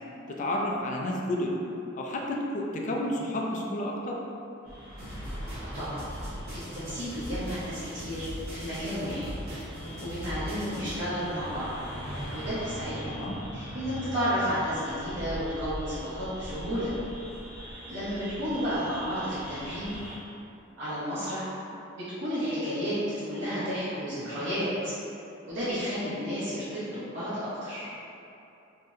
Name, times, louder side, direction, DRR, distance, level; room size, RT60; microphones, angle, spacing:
voice 1, 0.3-1.5 1.9-4.2 13.0-13.4 24.2-24.4, left 1 dB, 40° left, -1 dB, 0.3 m, -31 dB
sound 1, 4.6-20.2, equal, 5° right, 0.8 m, -41 dB
sound 2, 5.0-11.0, equal, 80° right, 1.2 m, -39 dB
voice 2, 5.6-6.0 6.7-8.2 8.5-9.3 10.0-11.7 12.3-13.2 13.5-16.9 17.9-19.9 20.8-21.4 22.2-23.0 23.2-24.9 25.5-27.9, equal, 60° right, -14 dB, 0.8 m, -32 dB
2.7 x 2.0 x 3.5 m, 2.8 s
head